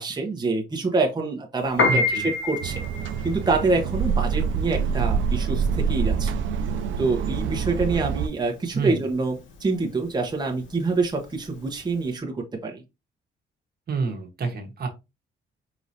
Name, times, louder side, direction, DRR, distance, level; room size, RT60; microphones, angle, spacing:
voice 1, 0.0-2.8 3.2-6.3 7.0-12.8, right 3 dB, 20° right, 1.0 m, -26 dB
Piano, 1.6-12.0, left 3 dB, 70° left, 1.2 m, -29 dB
voice 2, 1.8-2.3 8.7-9.0 13.9-14.9, right 4 dB, 50° right, 1.3 m, -28 dB
sound 1, 2.6-8.3, right 6 dB, 75° right, 0.5 m, -26 dB
5.1 x 2.9 x 2.7 m
cardioid pair, 90°, 20 cm